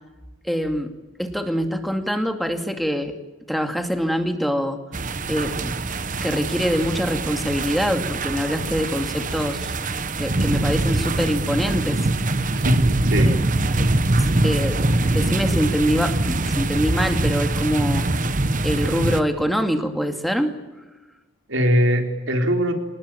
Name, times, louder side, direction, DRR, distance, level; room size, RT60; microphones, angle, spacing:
voice 1, 0.4-0.9 1.2-3.2 3.5-4.8 5.3-5.8 6.2-9.7 10.2-12.1 13.2-13.4 14.2-18.0 18.6-20.6, equal, ahead, 5 dB, 2.4 m, -24 dB
sound 1, 4.9-19.2, right 2 dB, 40° right, 1.1 m, -23 dB
voice 2, 12.5-13.3 21.5-22.7, equal, 80° right, 4 dB, 4.1 m, -21 dB
27.5 x 20.0 x 9.1 m, 1.1 s
head